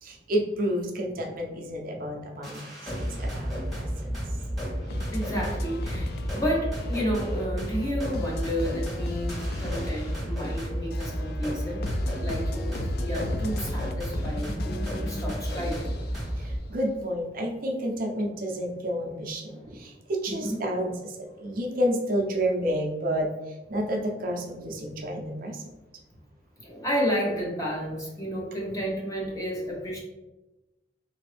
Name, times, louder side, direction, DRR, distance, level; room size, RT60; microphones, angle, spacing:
voice 1, 0.0-2.6 3.2-3.9 16.4-25.6, equal, 50° right, 1 dB, 0.5 m, -30 dB
sound 1, 2.4-16.6, equal, ahead, 1.2 m, -32 dB
voice 2, 3.1-3.5 5.1-11.9 12.2-16.0 19.5-19.7 20.3-20.6 26.6-30.0, equal, 20° left, -3 dB, 0.9 m, -31 dB
sound 2, 4.9-16.8, left 1 dB, 55° left, 0.4 m, -36 dB
3.7 x 2.5 x 3.3 m, 1.0 s
head